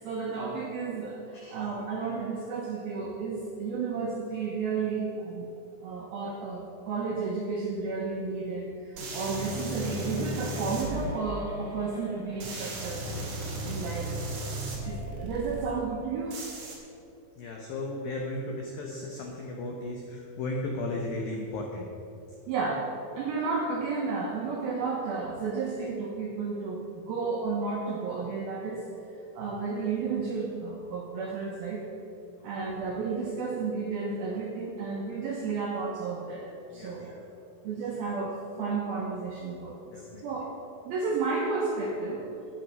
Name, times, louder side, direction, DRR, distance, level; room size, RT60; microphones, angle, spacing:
voice 1, 0.0-1.2 1.5-5.5 5.8-13.2 13.6-14.1 14.8-16.4 22.5-22.9 23.2-28.9 29.4-31.8 32.4-37.1 37.6-40.5 40.9-42.3, right 4 dB, 75° right, -2 dB, 2.2 m, -32 dB
sound 1, 9.0-11.1 12.4-15.6 16.3-16.7, right 1 dB, 45° right, 3.0 m, -35 dB
Giggle, 9.9-14.1 14.4-14.5 14.8-15.0, equal, ahead, 0.8 m, -44 dB
voice 2, 17.4-21.9 32.4-32.5 36.7-37.3 37.9-38.0 39.9-40.2, left 2 dB, 80° left, 0 dB, 2.0 m, -36 dB
12.0 x 10.5 x 5.5 m, 2.8 s
omnidirectional pair, 5.7 m